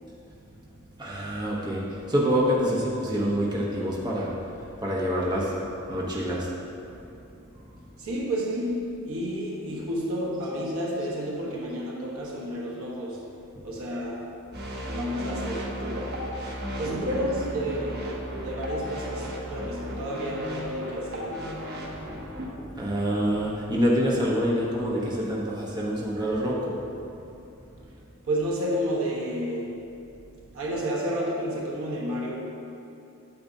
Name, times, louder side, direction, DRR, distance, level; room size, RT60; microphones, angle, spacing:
voice 1, 1.0-6.5 7.5-7.8 13.5-13.7 16.8-17.0 22.1-22.2 22.8-26.8, equal, 20° right, -5 dB, 0.9 m, -27 dB
voice 2, 8.0-13.3 13.6-14.4 14.9-16.5 16.8-21.6 28.2-29.9 30.5-32.4, equal, 65° right, -3 dB, 1.2 m, -31 dB
sound 1, 14.5-22.5, equal, 45° right, 1.0 m, -35 dB
8.7 x 8.6 x 2.7 m, 2.7 s
head